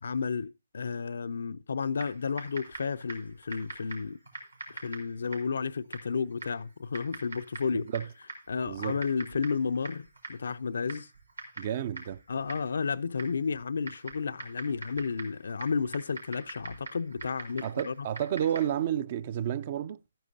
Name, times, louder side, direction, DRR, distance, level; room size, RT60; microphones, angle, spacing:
voice 1, 0.0-4.2 4.7-7.9 8.5-11.1 12.3-18.1, left 5 dB, 60° left, 0.4 m, -32 dB
Typing, 1.9-18.8, right 2 dB, 90° right, 4.3 m, -45 dB
voice 2, 7.7-8.0 8.7-9.0 11.6-12.2 17.6-20.0, right 10 dB, 40° right, 0.4 m, -31 dB
13.0 x 10.0 x 2.7 m
figure-of-eight pair, 140°, 0 cm